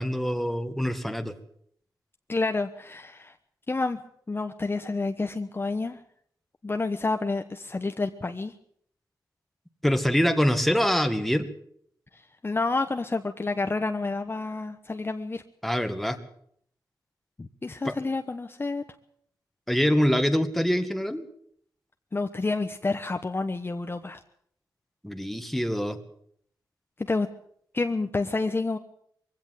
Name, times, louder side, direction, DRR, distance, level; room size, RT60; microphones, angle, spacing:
voice 1, 0.0-1.3 9.8-11.5 15.6-16.2 17.9-18.0 19.7-21.2 25.0-26.0, equal, ahead, 7 dB, 1.9 m, -24 dB
voice 2, 2.3-3.3 3.7-4.0 4.3-6.0 6.6-8.5 12.1-15.4 17.4-18.8 22.1-24.2 27.1-27.3 27.7-28.8, left 3 dB, 30° left, 6 dB, 1.1 m, -29 dB
22.0 x 16.5 x 7.6 m, 0.67 s
wide cardioid pair, 90°, 8 cm